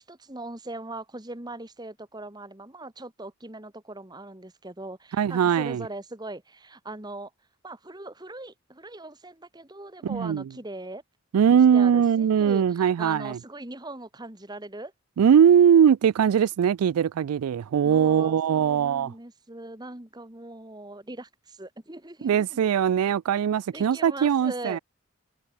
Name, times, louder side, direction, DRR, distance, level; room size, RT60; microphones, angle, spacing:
voice 1, 0.0-7.3 7.6-11.0 11.4-14.9 17.8-22.6 23.7-24.8, right 2 dB, 20° right, 1.6 m, -40 dB
voice 2, 5.2-5.8 10.1-10.4 11.3-13.4 15.2-19.1 22.2-24.8, right 8 dB, 85° right, 0.3 m, -20 dB
head